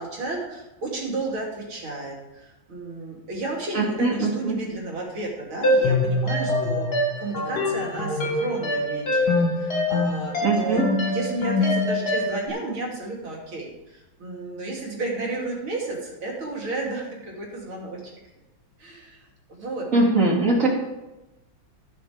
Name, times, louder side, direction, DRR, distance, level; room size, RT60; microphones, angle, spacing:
voice 1, 0.0-6.9 7.2-18.0 18.8-19.2 19.5-19.9, right 2 dB, 90° right, -2 dB, 3.7 m, -32 dB
voice 2, 3.7-4.6 10.4-10.8 19.9-20.7, right 2 dB, 40° right, -2 dB, 2.9 m, -21 dB
sound 1, 5.6-12.5, left 2 dB, 50° left, 2.4 m, -24 dB
14.0 x 8.0 x 5.2 m, 1.0 s
omnidirectional pair, 2.2 m